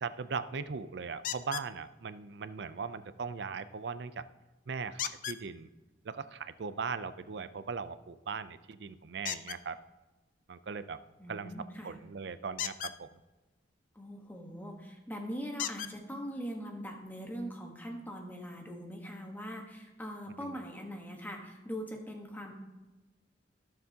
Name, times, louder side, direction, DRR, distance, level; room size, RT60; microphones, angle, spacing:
voice 1, 0.0-4.2 4.7-5.7 6.0-9.8 10.5-11.0 11.3-11.5 11.8-13.1 20.4-20.6, right 5 dB, 65° right, 14 dB, 0.5 m, -39 dB
sound 1, 1.2-1.7 5.0-5.4 9.2-9.6 12.5-13.0 14.6-14.7 15.6-15.9 16.9-17.0 17.5-17.6, left 10 dB, 45° left, 0.3 m, -36 dB
voice 2, 11.2-11.9 13.9-22.5, equal, 10° left, 1 dB, 1.2 m, -41 dB
16.0 x 6.8 x 2.8 m, 1.1 s
head